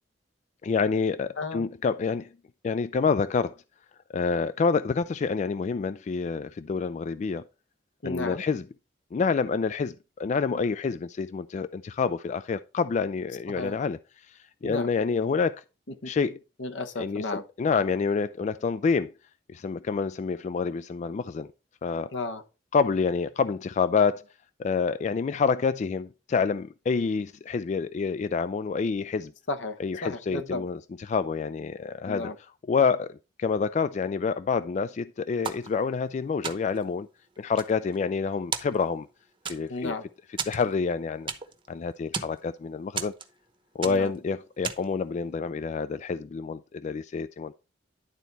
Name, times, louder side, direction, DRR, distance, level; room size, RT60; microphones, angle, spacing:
voice 1, 0.6-2.3 2.6-3.5 4.1-7.4 8.0-8.6 9.1-14.0 14.3-15.6 16.0-16.4 17.0-17.2 17.6-19.1 19.5-21.5 21.8-22.1 22.7-24.2 24.6-29.3 29.8-32.2 32.7-37.1 37.4-39.1 39.5-39.9 40.4-41.3 41.7-43.1 43.8-47.5, left 5 dB, 40° left, 0.3 m, -27 dB
voice 2, 1.4-1.7 8.0-8.4 13.5-13.7 14.6-14.9 15.9-16.1 16.6-17.4 22.1-22.4 29.5-30.6 32.0-32.3 39.7-40.0 43.8-44.1, left 2 dB, 75° left, 1.0 m, -33 dB
sound 1, 35.4-36.1 36.4-36.9 37.4-38.2 38.5-39.1 39.5-39.9 40.4-41.7 41.9-42.4 43.0-43.5 43.8-44.2 44.6-45.0, right 6 dB, 30° right, 0.9 m, -35 dB
11.0 x 4.1 x 4.5 m
head